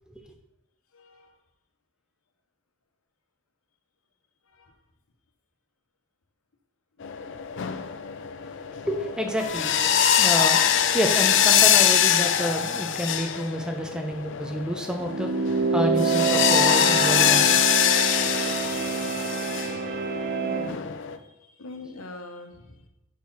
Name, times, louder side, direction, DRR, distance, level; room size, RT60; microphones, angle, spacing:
voice 1, 0.9-1.4 4.5-4.8 8.3-8.5 13.9-14.0 20.4-22.9, left 2 dB, 75° left, 5 dB, 1.0 m, -44 dB
sound 1, 7.0-21.2, left 9 dB, 55° left, 0.4 m, -23 dB
voice 2, 8.8-9.7 10.2-17.8, equal, 5° right, 3 dB, 0.7 m, -29 dB
sound 2, 15.0-20.8, right 5 dB, 45° right, 0.4 m, -27 dB
6.3 x 4.5 x 5.4 m, 0.92 s
head